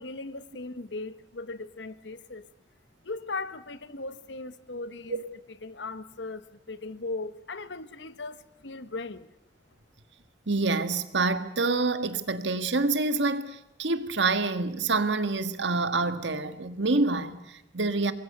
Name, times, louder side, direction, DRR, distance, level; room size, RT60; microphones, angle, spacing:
voice 1, 0.0-2.4 3.0-5.2 5.6-9.3, left 3 dB, 75° left, 1.2 m, -38 dB
voice 2, 10.5-18.1, right 3 dB, 80° right, 1.7 m, -27 dB
27.5 x 21.5 x 6.7 m
head